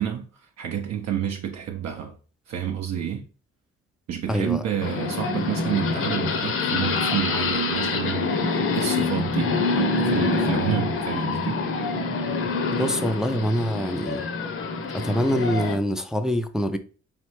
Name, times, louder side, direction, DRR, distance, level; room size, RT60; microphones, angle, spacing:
voice 1, 0.0-2.2 2.5-3.3 4.1-11.6, right 9 dB, 60° right, 0.6 m, -29 dB
voice 2, 4.3-4.6 12.7-14.3 14.9-16.8, equal, ahead, 0.3 m, -25 dB
sound 1, 4.8-15.8, left 3 dB, 45° left, 0.6 m, -26 dB
4.0 x 3.2 x 3.1 m
cardioid pair, 90°, 30 cm